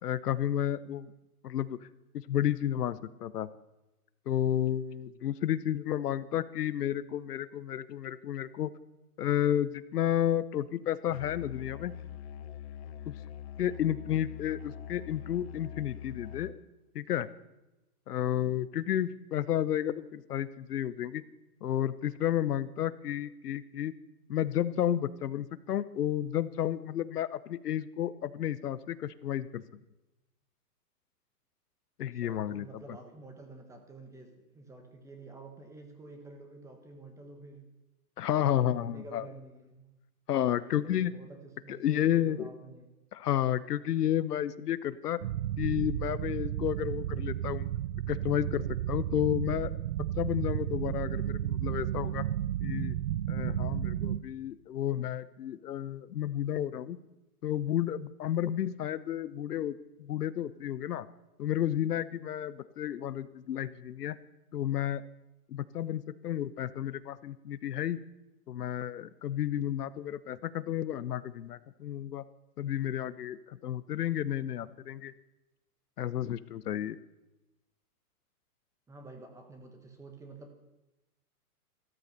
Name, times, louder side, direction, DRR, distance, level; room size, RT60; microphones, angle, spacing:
voice 1, 0.0-1.1 1.4-1.8 2.1-3.5 4.3-8.7 9.2-11.9 13.1-13.2 13.6-16.5 16.9-17.3 18.1-21.2 21.6-23.9 24.3-29.6 32.0-32.7 38.2-39.2 40.3-41.1 41.7-42.5 43.1-45.2 45.6-47.7 48.1-49.7 50.2-52.2 52.6-53.0 53.3-57.0 57.4-61.1 61.4-64.2 64.5-65.0 65.5-68.0 68.5-72.2 72.6-75.1 76.0-77.0, left 11 dB, 80° left, 16 dB, 0.9 m, -31 dB
Musical instrument, 11.1-16.6, left 10 dB, 45° left, 1.0 m, -44 dB
voice 2, 32.1-37.7 38.3-39.9 40.5-42.9 78.9-80.5, right 2 dB, 5° right, 6 dB, 1.2 m, -49 dB
sound 1, 45.2-54.2, right 12 dB, 55° right, 0.6 m, -33 dB
14.0 x 13.0 x 6.7 m, 0.97 s
hypercardioid pair, 155°, 46 cm